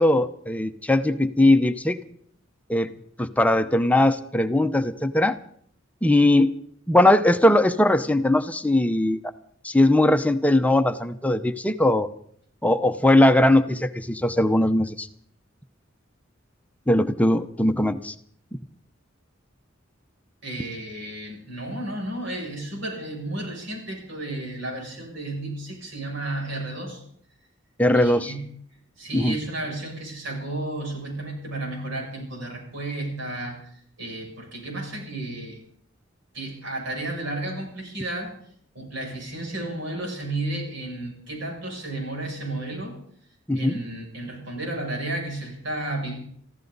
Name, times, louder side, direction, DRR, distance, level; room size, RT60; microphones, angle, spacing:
voice 1, 0.0-2.0 2.7-2.9 3.2-5.4 6.0-6.5 6.9-9.2 9.6-12.1 12.6-15.1 16.9-18.1 27.8-28.3 29.1-29.3 43.5-43.8, left 1 dB, 10° left, 9 dB, 0.8 m, -20 dB
voice 2, 20.4-27.0 27.9-28.4 29.0-35.6 36.3-38.4 38.8-43.0 43.5-46.1, right 2 dB, 65° right, 0 dB, 7.0 m, -32 dB
24.0 x 15.0 x 4.0 m, 0.63 s
head